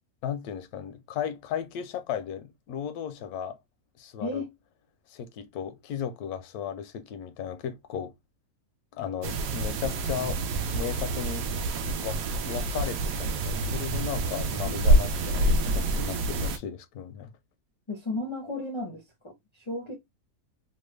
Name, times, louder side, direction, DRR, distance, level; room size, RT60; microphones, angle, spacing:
voice 1, 0.2-3.6 4.0-4.4 5.1-8.1 8.9-10.4 10.7-11.5 12.0-12.2 12.4-17.3, left 8 dB, 80° left, 1.1 m, -35 dB
voice 2, 4.2-4.5 17.9-20.0, left 2 dB, 45° left, 0.3 m, -34 dB
sound 1, 9.2-16.6, right 1 dB, 75° right, 1.0 m, -27 dB
3.0 x 2.2 x 3.1 m
omnidirectional pair, 1.6 m